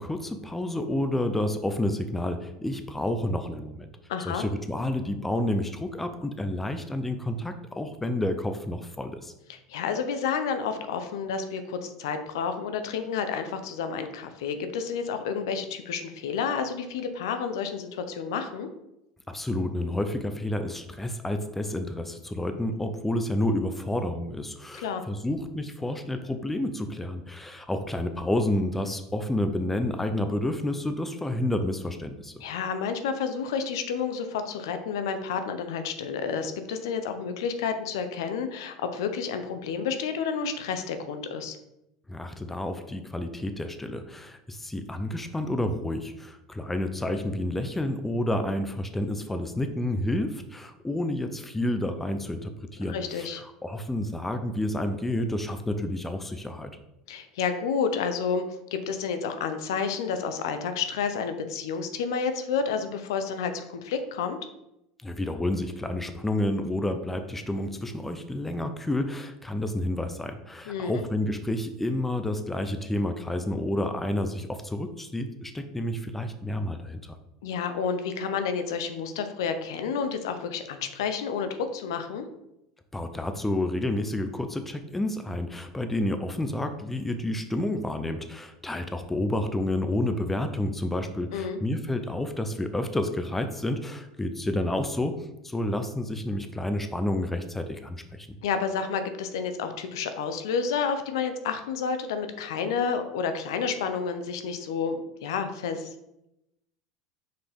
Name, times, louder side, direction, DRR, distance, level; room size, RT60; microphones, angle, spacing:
voice 1, 0.0-3.9 4.2-9.3 19.3-32.3 42.1-56.7 65.0-77.2 82.9-95.2 95.4-98.3, left 1 dB, 10° left, 8 dB, 0.7 m, -30 dB
voice 2, 4.1-4.4 9.5-18.7 24.8-25.0 32.4-41.6 52.9-53.4 57.1-58.4 58.7-64.4 70.7-70.9 77.4-82.2 91.3-91.6 98.4-105.9, left 6 dB, 80° left, 8 dB, 0.7 m, -30 dB
6.2 x 4.8 x 3.5 m, 0.87 s
hypercardioid pair, 90°, 2 cm